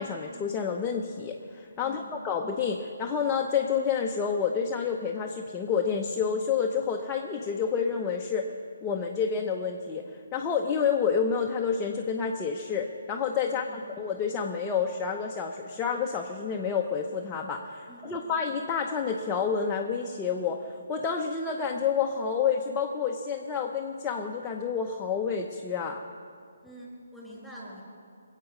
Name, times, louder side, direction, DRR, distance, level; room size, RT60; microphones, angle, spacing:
voice 1, 0.0-8.5 8.8-10.0 10.3-26.0, left 6 dB, 15° left, 0 dB, 0.8 m, -29 dB
voice 2, 1.8-2.2 13.4-14.0 17.9-18.3 26.6-27.8, right 1 dB, ahead, -5 dB, 4.7 m, -47 dB
21.5 x 8.3 x 6.4 m, 2.3 s
figure-of-eight pair, 145°, 0 cm